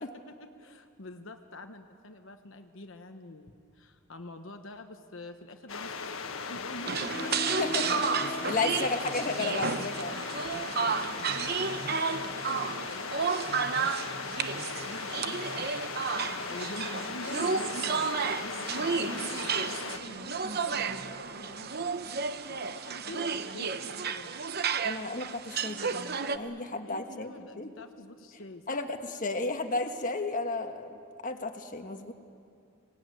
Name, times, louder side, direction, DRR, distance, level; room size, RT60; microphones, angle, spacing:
voice 1, 0.0-7.5 10.3-13.5 14.7-21.9 22.5-23.3 23.5-24.3 26.8-28.8, left 2 dB, 70° left, 5 dB, 1.1 m, -46 dB
sound 1, 5.7-20.0, left 5 dB, 85° left, 1.5 m, -38 dB
sound 2, 6.9-26.4, right 5 dB, 50° right, 0.9 m, -32 dB
sound 3, 7.0-11.8, left 2 dB, 25° left, 2.5 m, -42 dB
voice 2, 7.4-10.2 24.8-27.7 28.7-32.1, left 3 dB, 40° left, 5 dB, 1.5 m, -33 dB
25.0 x 18.5 x 9.2 m, 2.4 s
head